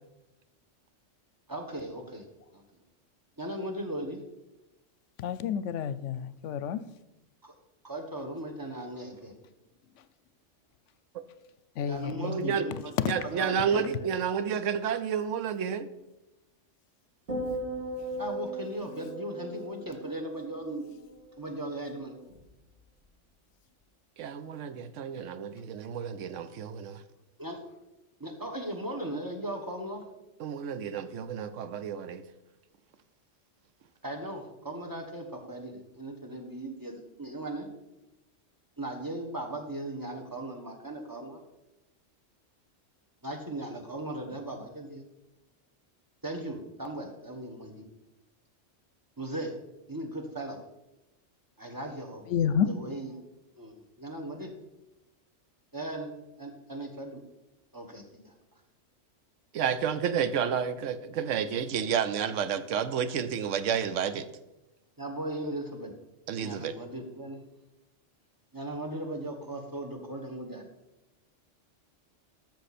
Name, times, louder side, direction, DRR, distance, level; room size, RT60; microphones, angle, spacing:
voice 1, 1.5-2.3 2.5-2.6 3.4-4.2 7.4-7.5 7.8-9.3 11.8-12.9 13.3-14.1 18.2-20.9 21.4-22.1 27.4-27.6 28.2-30.0 34.0-37.7 38.8-41.4 43.2-45.0 46.2-47.8 49.2-49.5 49.9-50.6 51.6-52.2 52.6-53.1 53.6-54.5 55.7-56.1 56.4-57.2 57.7-58.3 62.3-62.4 65.0-65.9 66.4-67.4 68.5-70.7, right 1 dB, 15° right, 2 dB, 1.3 m, -38 dB
voice 2, 5.2-6.9 10.0-10.1 11.8-13.1 52.3-52.7, left 8 dB, 75° left, 14 dB, 0.9 m, -30 dB
voice 3, 12.2-12.7 13.1-15.9 24.2-27.0 30.4-32.2 59.5-64.3 66.3-66.7, right 7 dB, 80° right, 12 dB, 1.0 m, -30 dB
sound 1, 17.3-21.7 22.0-22.4, right 1 dB, 60° right, 2.7 m, -38 dB
13.0 x 6.6 x 4.2 m, 0.98 s
omnidirectional pair, 1.3 m